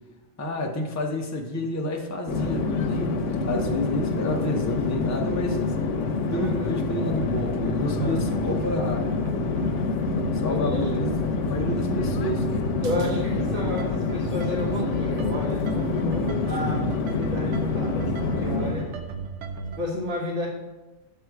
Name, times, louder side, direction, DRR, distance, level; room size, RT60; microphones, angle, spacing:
voice 1, 0.4-5.6 6.3-9.1 10.4-11.1 11.5-12.5 16.6-16.8, equal, 20° left, 1 dB, 0.6 m, -29 dB
Conversation / Chatter / Fixed-wing aircraft airplane, 2.3-18.9, left 4 dB, 90° left, 1.0 m, -27 dB
voice 2, 6.3-6.7 8.0-8.3 10.5-11.0 12.8-18.9 19.8-20.5, left 2 dB, 50° right, -5 dB, 1.5 m, -31 dB
sound 1, 6.3-19.8, right 5 dB, 90° right, 1.0 m, -36 dB
7.8 x 3.6 x 4.6 m, 1.1 s
omnidirectional pair, 1.2 m